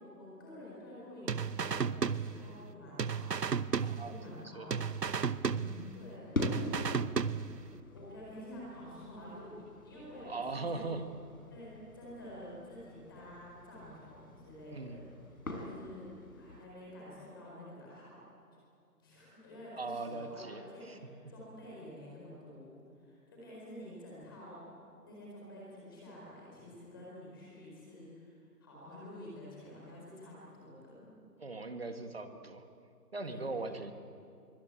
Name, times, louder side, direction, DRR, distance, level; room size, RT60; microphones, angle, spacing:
voice 1, 0.0-5.0 5.4-6.4 6.6-6.9 7.9-9.5 9.8-10.9 11.5-15.1 15.5-16.1 16.3-18.2 19.0-24.7 25.0-31.1 33.3-33.7, left 1 dB, 15° left, -5 dB, 4.5 m, -49 dB
sound 1, 1.3-2.7 3.0-4.4 4.7-6.1 6.4-7.7, right 6 dB, 80° right, 1.0 m, -34 dB
voice 2, 3.8-4.7 10.2-11.1 14.7-15.0 19.8-21.0 31.4-32.6 33.1-33.9, right 3 dB, 40° right, 7 dB, 1.7 m, -40 dB
sound 2, 4.6-16.7, left 2 dB, 60° left, 5.4 m, -44 dB
24.5 x 24.0 x 8.8 m, 2.5 s
figure-of-eight pair, 175°, 48 cm